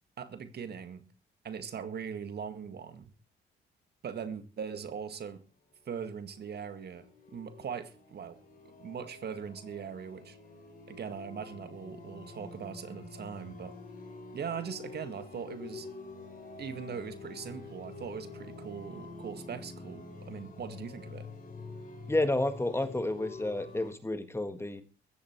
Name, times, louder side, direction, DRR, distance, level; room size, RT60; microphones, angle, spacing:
voice 1, 0.2-1.0 1.4-3.1 4.0-5.4 5.9-8.4 8.8-10.4 10.9-13.7 14.3-15.9 16.6-21.3, right 7 dB, 55° right, 2.0 m, -40 dB
sound 1, 5.8-23.9, left 3 dB, 45° left, 4.6 m, -47 dB
voice 2, 22.1-24.8, left 2 dB, 10° left, 1.7 m, -30 dB
15.0 x 14.0 x 4.6 m
cardioid pair, 90°, 20 cm